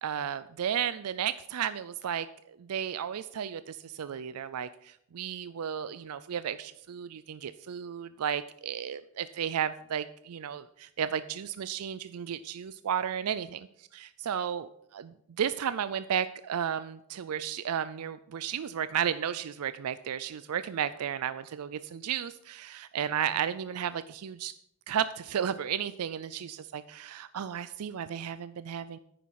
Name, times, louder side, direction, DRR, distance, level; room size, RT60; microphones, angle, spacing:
voice 1, 0.0-24.5 24.9-29.0, right 8 dB, 85° right, 14 dB, 0.4 m, -33 dB
10.0 x 9.3 x 4.8 m, 0.74 s
head